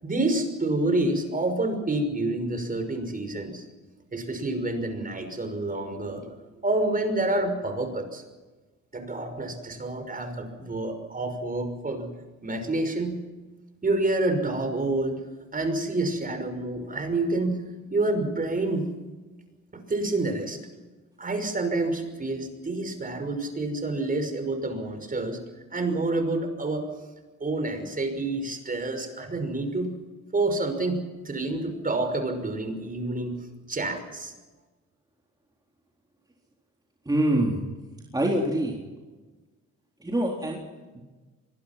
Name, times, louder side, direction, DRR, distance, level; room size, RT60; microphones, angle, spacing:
voice 1, 0.0-3.7 4.1-6.3 6.6-8.2 8.9-12.1 12.4-13.2 13.8-15.2 15.5-17.6 17.9-18.9 19.7-20.6 21.2-25.4 25.7-26.9 27.4-29.9 30.3-33.4 33.7-34.3, right 2 dB, 30° right, 7 dB, 5.8 m, -28 dB
voice 2, 37.1-37.6 38.1-38.8 40.0-40.6, right 1 dB, 15° right, -1 dB, 4.0 m, -24 dB
25.0 x 21.5 x 6.0 m, 1.2 s
cardioid pair, 90°, 30 cm